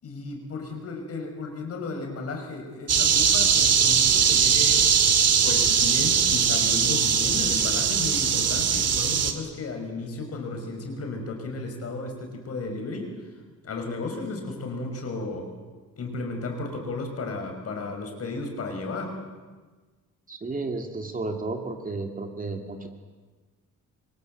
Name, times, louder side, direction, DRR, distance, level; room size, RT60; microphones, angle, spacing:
voice 1, 0.0-5.0 5.4-13.4 13.6-15.5 16.0-19.2, left 3 dB, 45° left, 4 dB, 5.9 m, -34 dB
sound 1, 2.9-9.3, right 7 dB, 50° right, 2.4 m, -21 dB
voice 2, 20.3-22.9, right 3 dB, 25° right, 4 dB, 2.4 m, -32 dB
28.0 x 25.0 x 8.0 m, 1.4 s
cardioid pair, 165°, 32 cm